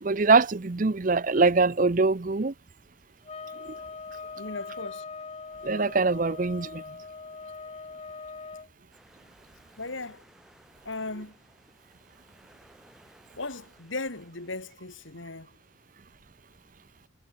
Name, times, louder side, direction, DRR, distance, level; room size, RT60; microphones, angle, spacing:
voice 1, 0.0-2.5 5.6-6.8, right 3 dB, 40° right, 0.6 m, -23 dB
sound 1, 3.2-8.7, left 4 dB, 30° left, 0.6 m, -41 dB
voice 2, 4.3-5.0 9.8-10.2 10.8-11.3 13.3-15.5, left 3 dB, 75° left, 3.1 m, -37 dB
sound 2, 8.9-14.8, equal, ahead, 4.1 m, -59 dB
head